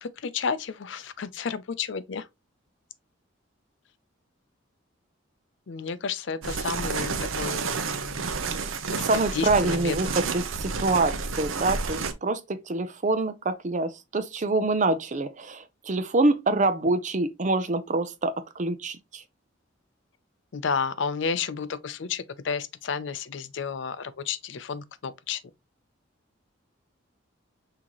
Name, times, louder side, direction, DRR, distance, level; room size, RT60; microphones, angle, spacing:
voice 1, 0.0-2.3 5.7-8.3 8.9-9.0 9.3-10.0 20.5-25.4, left 5 dB, 60° left, 0.5 m, -31 dB
sound 1, 6.4-12.1, right 4 dB, 85° right, 0.7 m, -30 dB
voice 2, 9.0-19.2, right 2 dB, 35° right, 0.6 m, -26 dB
6.1 x 2.8 x 2.9 m
head